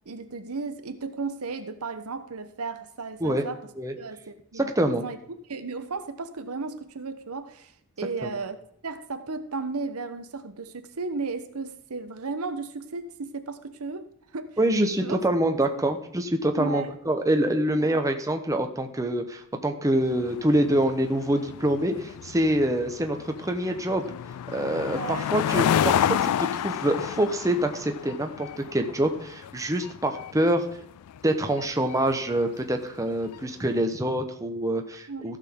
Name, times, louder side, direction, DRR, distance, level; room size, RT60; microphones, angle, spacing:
voice 1, 0.1-3.7 4.0-5.2 5.5-7.7 8.0-8.6 8.8-14.1 14.3-14.6 15.0-15.2 15.4-15.6 16.6-16.9 17.7-18.0 24.9-25.4 35.1-35.3, right 4 dB, 75° right, 9 dB, 1.0 m, -34 dB
voice 2, 4.6-5.0 8.2-8.3 14.6-24.0 24.5-30.6 31.2-35.4, right 1 dB, 15° right, 5 dB, 0.9 m, -25 dB
sound 1, 20.0-33.5, left 9 dB, 80° left, 0.3 m, -31 dB
15.5 x 6.7 x 3.7 m, 0.69 s
head